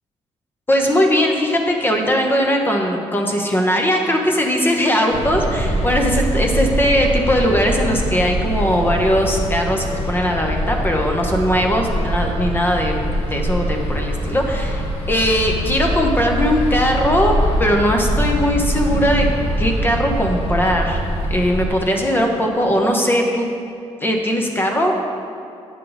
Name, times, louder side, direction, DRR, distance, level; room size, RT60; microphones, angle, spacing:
voice 1, 0.7-12.9 13.3-17.3 17.6-19.3 19.6-23.5 24.0-24.9, equal, 20° left, 2 dB, 1.0 m, -19 dB
sound 1, 5.1-21.7, right 1 dB, 65° left, 1.7 m, -23 dB
9.1 x 6.5 x 4.0 m, 2.6 s
cardioid pair, 120°, 12 cm